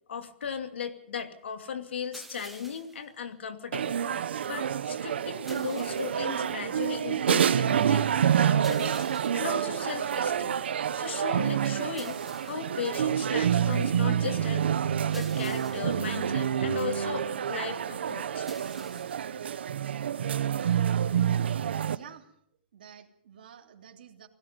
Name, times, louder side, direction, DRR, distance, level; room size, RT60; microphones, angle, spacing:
voice 1, 0.1-4.0 4.5-8.1 8.4-9.1 9.3-10.6 11.0-18.5, left 7 dB, 85° left, 7 dB, 2.7 m, -37 dB
sound 1, 2.1-3.1 5.5-6.3 8.6-9.6 12.0-12.8 15.1-16.1 18.5-19.3, right 2 dB, ahead, 1.2 m, -49 dB
sound 2, 3.7-22.0, right 9 dB, 70° right, 1.2 m, -28 dB
voice 2, 21.8-22.3 22.7-24.3, right 9 dB, 55° right, 2 dB, 3.2 m, -50 dB
29.5 x 18.0 x 5.4 m, 0.69 s
hypercardioid pair, 180°, 6 cm